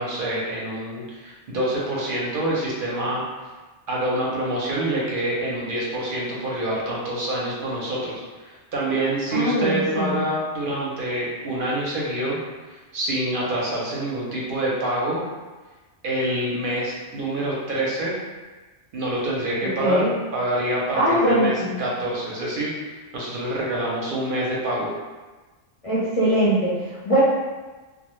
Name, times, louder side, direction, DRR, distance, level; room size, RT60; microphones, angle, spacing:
voice 1, 0.0-3.2 3.9-12.4 12.7-15.2 16.0-18.2 18.9-20.0 20.3-21.5 21.8-24.9, right 1 dB, 60° right, -5 dB, 0.6 m, -26 dB
voice 2, 9.3-10.2 19.6-20.1 20.9-21.8 25.8-27.2, equal, 40° left, -9 dB, 0.5 m, -21 dB
2.1 x 2.0 x 2.9 m, 1.3 s
omnidirectional pair, 1.2 m